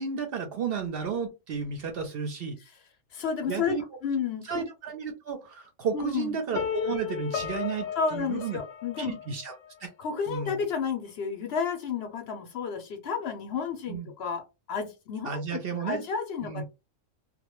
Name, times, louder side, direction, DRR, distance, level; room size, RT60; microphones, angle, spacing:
voice 1, 0.0-2.6 3.5-3.8 4.4-8.6 9.0-9.6 9.8-9.9 10.3-10.5 13.9-14.1 15.2-16.0 16.4-16.6, right 6 dB, 60° right, 0.7 m, -33 dB
voice 2, 3.1-4.6 5.9-6.4 8.0-9.2 10.0-16.6, left 6 dB, 65° left, 0.8 m, -31 dB
sound 1, 6.6-9.5, left 7 dB, 90° left, 1.0 m, -34 dB
2.2 x 2.1 x 2.9 m
omnidirectional pair, 1.3 m